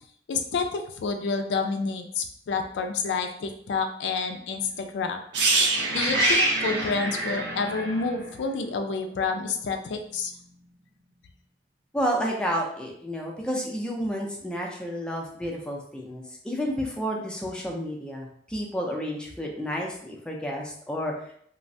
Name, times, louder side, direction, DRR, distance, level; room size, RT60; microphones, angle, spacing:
voice 1, 0.3-5.2 5.9-10.3, left 4 dB, 90° left, 5 dB, 0.3 m, -29 dB
sound 1, 5.3-9.2 9.5-9.7, right 2 dB, 85° right, 0.6 m, -25 dB
voice 2, 11.9-21.1, equal, 5° left, -1 dB, 0.4 m, -31 dB
3.1 x 2.0 x 2.6 m, 0.64 s
head